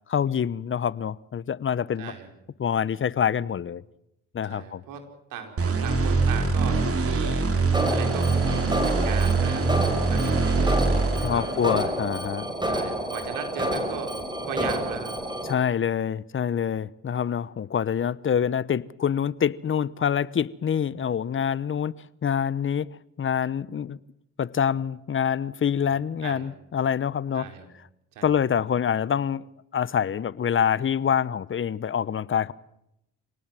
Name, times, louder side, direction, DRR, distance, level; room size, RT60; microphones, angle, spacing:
voice 1, 0.1-2.1 2.6-3.8 4.3-4.8 11.2-12.5 15.4-21.9 22.2-22.9 23.2-24.0 24.4-27.5 28.2-29.4 29.7-32.5, left 8 dB, 40° left, 1.0 m, -26 dB
voice 2, 2.0-2.3 4.4-5.0 5.3-7.5 7.9-8.5 8.8-11.5 12.7-14.2 14.4-15.1 26.2-26.5 27.3-27.6 28.1-28.4, right 7 dB, 80° right, 5.1 m, -37 dB
sound 1, 5.6-12.0, right 3 dB, 45° right, 4.0 m, -24 dB
Alarm, 7.7-15.5, right 1 dB, 15° right, 5.9 m, -29 dB
26.5 x 18.5 x 7.7 m
supercardioid pair, 70°, 33 cm